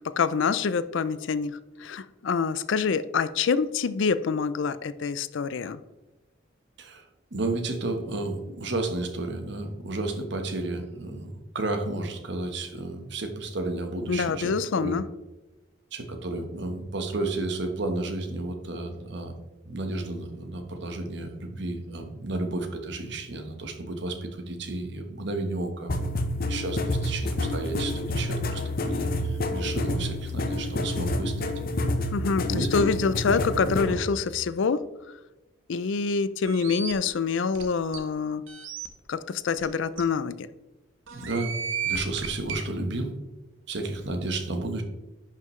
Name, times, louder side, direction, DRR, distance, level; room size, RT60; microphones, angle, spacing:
voice 1, 0.0-5.8 14.1-15.1 32.1-34.8 35.7-38.4 39.1-40.5, left 5 dB, 70° left, 15 dB, 0.4 m, -26 dB
voice 2, 7.3-15.0 15.9-19.3 19.6-26.0 26.3-31.5 32.5-34.0 41.1-41.5 41.8-43.2 43.7-44.8, right 2 dB, 60° right, 5 dB, 1.2 m, -32 dB
sound 1, 25.9-33.9, left 1 dB, 50° left, 0.8 m, -28 dB
sound 2, 36.4-36.9 37.5-37.6 37.9-38.0 38.5-38.9 39.6-39.7 40.0-40.1 41.1-42.6, right 7 dB, 80° right, 1.0 m, -33 dB
10.5 x 5.7 x 3.1 m, 1.1 s
head